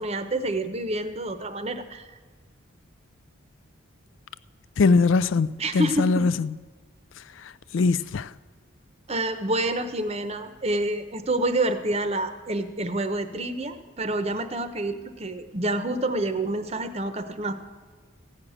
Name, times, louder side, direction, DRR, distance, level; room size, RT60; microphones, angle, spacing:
voice 1, 0.0-2.0 5.6-6.2 9.1-17.5, right 2 dB, 30° right, 0.8 m, -28 dB
voice 2, 4.8-6.5 7.4-8.3, left 4 dB, 70° left, 0.4 m, -22 dB
15.5 x 6.4 x 8.8 m
head